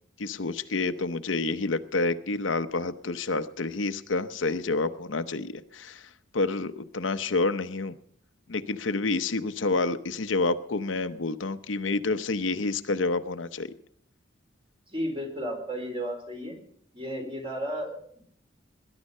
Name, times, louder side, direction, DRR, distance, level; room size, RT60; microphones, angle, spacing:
voice 1, 0.2-7.9 8.5-13.7, left 3 dB, 80° left, 10 dB, 0.8 m, -29 dB
voice 2, 14.9-16.6 16.9-18.2, equal, 30° right, 2 dB, 4.1 m, -33 dB
20.0 x 11.0 x 5.5 m, 0.62 s
head